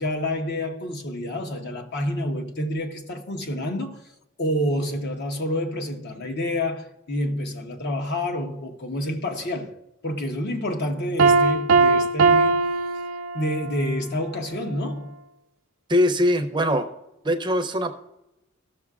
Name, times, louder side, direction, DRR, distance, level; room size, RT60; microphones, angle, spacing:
voice 1, 0.0-4.0 4.4-9.7 10.0-12.6 13.3-15.1, left 1 dB, 55° left, 1.0 m, -28 dB
Piano, 11.2-13.7, right 4 dB, 75° right, 0.4 m, -19 dB
voice 2, 15.9-16.9 17.2-17.9, equal, 20° right, 0.6 m, -21 dB
16.0 x 6.5 x 2.4 m
head